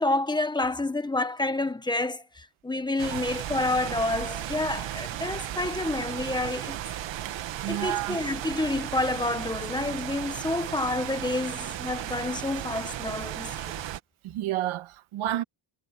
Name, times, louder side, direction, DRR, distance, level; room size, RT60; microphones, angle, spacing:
voice 1, 0.0-6.8 7.7-13.7, left 2 dB, 10° left, 1.3 m, -29 dB
sound 1, 3.0-14.0, right 12 dB, 65° right, 1.8 m, -35 dB
voice 2, 7.6-8.2 14.2-15.4, right 13 dB, 80° right, 1.8 m, -30 dB
cardioid pair, 160°, 48 cm